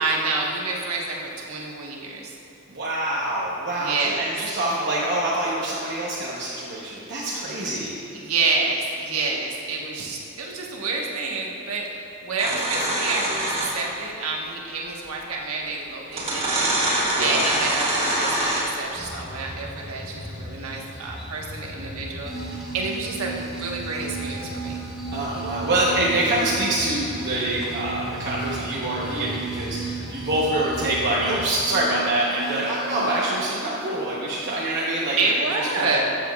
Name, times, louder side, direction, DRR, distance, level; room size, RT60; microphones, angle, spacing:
voice 1, 0.0-2.3 3.8-4.3 7.5-7.6 8.1-11.8 12.2-24.8 35.2-36.0, right 3 dB, 85° right, -2 dB, 1.2 m, -28 dB
voice 2, 2.7-8.0 17.2-17.4 25.1-36.0, right 1 dB, 50° right, -6 dB, 0.9 m, -25 dB
sound 1, 12.4-13.9 15.2-15.3 16.1-18.8, right 1 dB, 30° right, 1.7 m, -24 dB
sound 2, 18.9-31.6, left 1 dB, 50° left, 1.2 m, -38 dB
sound 3, 22.3-33.3, right 5 dB, ahead, 1.2 m, -35 dB
13.0 x 7.7 x 2.3 m, 2.9 s
head